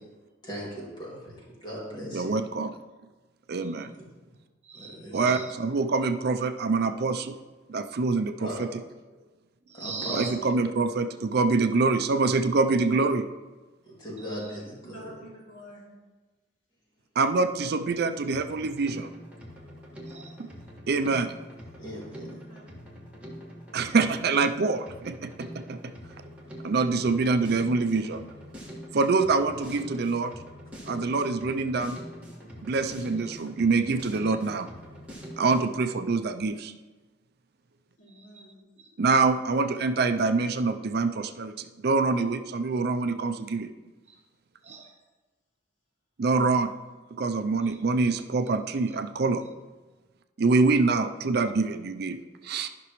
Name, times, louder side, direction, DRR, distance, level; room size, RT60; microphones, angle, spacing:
voice 1, 0.4-2.4 3.9-4.0 4.7-5.4 8.4-8.6 9.7-10.2 13.8-15.1 21.8-22.3, equal, 25° left, -5 dB, 2.5 m, -38 dB
voice 2, 2.1-2.7 3.5-3.9 5.1-7.3 7.7-8.7 10.1-13.3 17.2-19.1 20.9-21.3 23.7-25.8 26.6-28.2 28.9-30.3 30.9-32.0 32.6-34.7 35.4-36.7 39.0-43.7 46.2-46.7 47.2-49.4 50.4-52.2 52.4-52.7, right 3 dB, 55° right, 8 dB, 0.5 m, -25 dB
voice 3, 4.6-5.5 9.1-9.2 9.6-10.3 14.2-14.6 20.0-20.4 34.2-34.4 38.1-38.9 44.0-44.2 44.6-45.0 47.6-47.8 49.2-49.4, right 5 dB, 35° right, 1 dB, 1.2 m, -42 dB
voice 4, 14.8-16.0 22.2-22.7 38.0-38.6, right 1 dB, 90° left, -5 dB, 3.0 m, -49 dB
Drum kit, 18.3-35.8, equal, 10° right, 1.8 m, -44 dB
13.0 x 6.0 x 3.1 m, 1.2 s
head